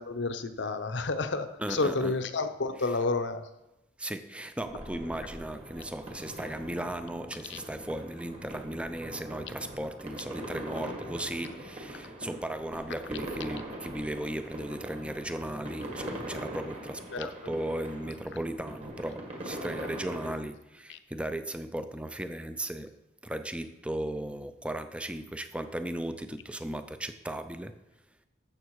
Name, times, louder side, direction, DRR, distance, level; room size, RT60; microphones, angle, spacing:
voice 1, 0.0-3.5 7.5-7.6 17.1-17.3 20.9-21.0, left 3 dB, 65° left, 0.8 m, -30 dB
voice 2, 1.6-2.1 4.0-22.9 23.2-27.8, right 1 dB, 5° right, 0.5 m, -36 dB
sound 1, 4.6-20.3, right 1 dB, 30° right, 1.8 m, -42 dB
13.0 x 7.5 x 4.8 m
head